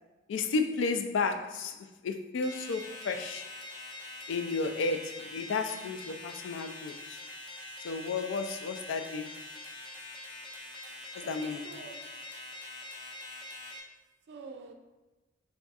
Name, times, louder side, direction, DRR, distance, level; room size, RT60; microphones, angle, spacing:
voice 1, 0.3-1.8 2.0-3.5 4.3-7.2 7.8-9.4 11.1-11.7, left 4 dB, 85° left, 7 dB, 0.3 m, -32 dB
sound 1, 2.4-13.8, left 2 dB, 25° left, 0.5 m, -44 dB
voice 2, 10.8-12.1 14.3-14.7, right 4 dB, 60° right, 5 dB, 0.3 m, -47 dB
3.5 x 2.3 x 3.9 m, 1.2 s
head